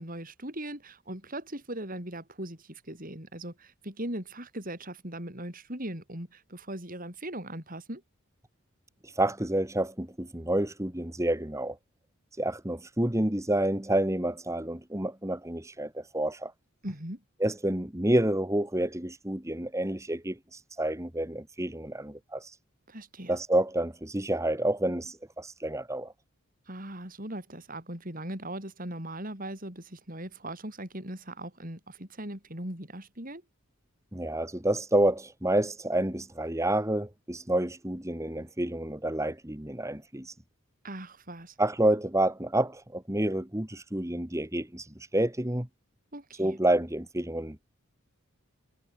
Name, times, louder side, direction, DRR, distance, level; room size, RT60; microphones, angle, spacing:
voice 1, 0.0-8.0 16.8-17.2 22.9-23.4 26.7-33.4 40.8-41.6 46.1-46.6, right 1 dB, 40° right, 6.7 m, -39 dB
voice 2, 9.2-11.8 12.4-16.5 17.4-20.4 20.8-22.5 23.3-26.1 34.1-40.3 41.6-44.8 45.1-45.7 46.4-47.7, right 1 dB, 15° right, 1.6 m, -29 dB
head